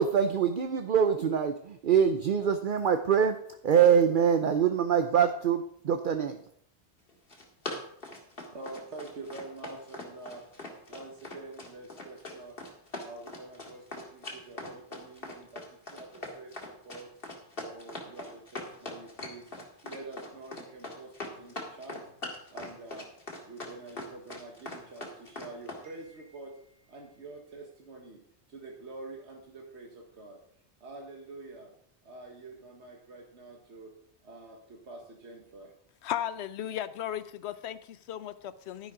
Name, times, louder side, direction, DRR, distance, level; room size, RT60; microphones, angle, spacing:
voice 1, 0.0-3.4 3.6-6.4, right 7 dB, 55° right, 8 dB, 0.8 m, -24 dB
Run, 7.1-25.8, left 2 dB, 60° left, 2.3 m, -41 dB
voice 2, 8.5-10.4 10.9-12.6 13.0-17.1 17.6-19.5 19.8-22.0 22.5-23.1 23.5-28.2 28.5-30.4 30.8-31.7 32.0-33.9 34.2-35.7, right 3 dB, 85° right, 0 dB, 1.7 m, -46 dB
voice 3, 36.0-38.9, left 11 dB, 75° left, 15 dB, 0.9 m, -36 dB
11.5 x 10.5 x 3.8 m, 0.66 s
omnidirectional pair, 1.1 m